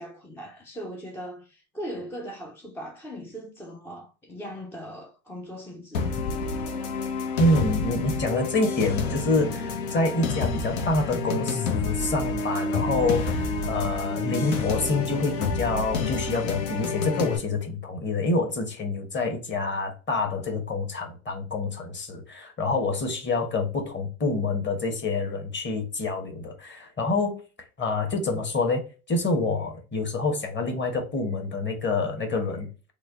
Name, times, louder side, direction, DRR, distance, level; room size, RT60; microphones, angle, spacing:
voice 1, 0.0-6.1, equal, 5° left, 0.3 m, -39 dB
sound 1, 5.9-17.4, left 4 dB, 80° left, 0.9 m, -29 dB
voice 2, 7.4-27.4 27.8-28.8 29.1-32.7, left 2 dB, 25° left, 1.0 m, -27 dB
3.2 x 2.2 x 3.6 m
hypercardioid pair, 85°, 44 cm